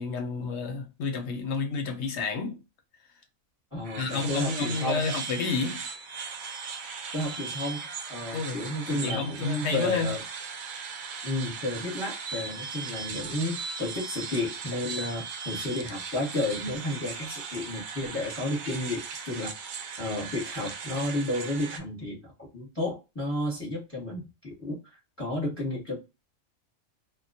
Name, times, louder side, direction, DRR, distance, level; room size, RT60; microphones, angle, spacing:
voice 1, 0.0-2.6 4.0-5.8 8.3-8.6 8.9-10.1, left 4 dB, 65° left, 0.7 m, -30 dB
voice 2, 3.7-5.1 7.1-10.2 11.2-19.5 20.0-26.0, left 1 dB, 10° left, 0.8 m, -32 dB
sound 1, 3.8-21.8, right 5 dB, 80° right, 1.0 m, -38 dB
2.2 x 2.1 x 2.6 m
omnidirectional pair, 1.4 m